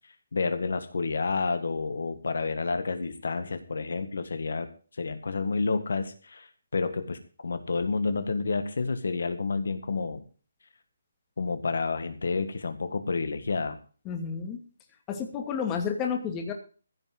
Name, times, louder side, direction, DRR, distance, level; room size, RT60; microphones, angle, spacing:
voice 1, 0.3-4.7 4.9-10.2 11.4-13.8, left 4 dB, 70° left, 9 dB, 1.7 m, -30 dB
voice 2, 14.1-14.6 15.1-16.5, left 6 dB, 20° left, 4 dB, 2.5 m, -31 dB
15.5 x 5.8 x 7.9 m, 0.39 s
figure-of-eight pair, 150°, 0 cm